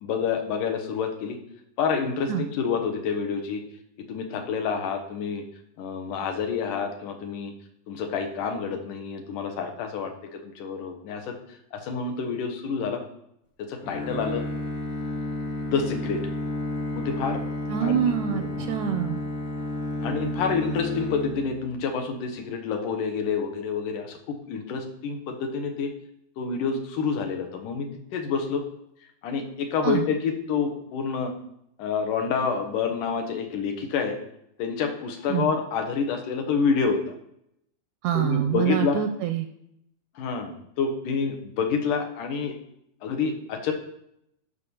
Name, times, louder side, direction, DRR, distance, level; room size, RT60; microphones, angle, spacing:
voice 1, 0.0-1.4 1.8-3.6 4.1-5.4 5.8-7.5 7.9-11.4 11.7-13.0 13.7-14.4 15.7-16.2 16.9-17.4 17.8-18.0 18.3-18.7 20.0-25.9 26.4-28.6 29.2-31.3 31.8-34.2 34.6-37.0 38.1-39.0 40.2-42.5 43.0-43.7, left 5 dB, 75° left, 4 dB, 2.8 m, -28 dB
Bowed string instrument, 13.8-22.0, left 1 dB, 45° left, 1.0 m, -31 dB
voice 2, 17.7-19.2 29.8-30.1 35.3-35.5 38.0-39.5, right 10 dB, 80° right, 8 dB, 1.7 m, -25 dB
8.4 x 6.5 x 7.0 m, 0.76 s
omnidirectional pair, 3.8 m